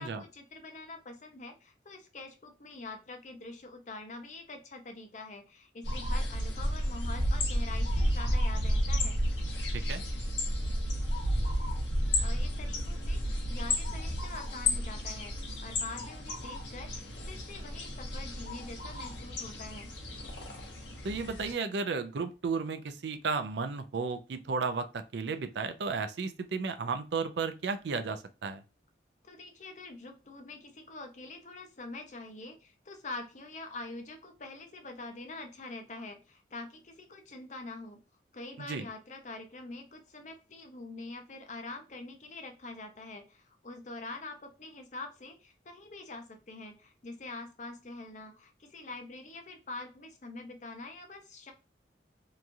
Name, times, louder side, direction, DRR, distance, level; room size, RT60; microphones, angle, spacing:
voice 1, 0.0-9.2 12.2-19.9 29.2-38.0 38.3-51.5, left 3 dB, 40° left, 5 dB, 0.6 m, -45 dB
sound 1, 5.8-21.5, equal, 75° left, 0.9 m, -32 dB
voice 2, 21.0-28.6 38.6-38.9, right 4 dB, 70° right, 9 dB, 0.4 m, -34 dB
2.9 x 2.3 x 2.5 m, 0.32 s
head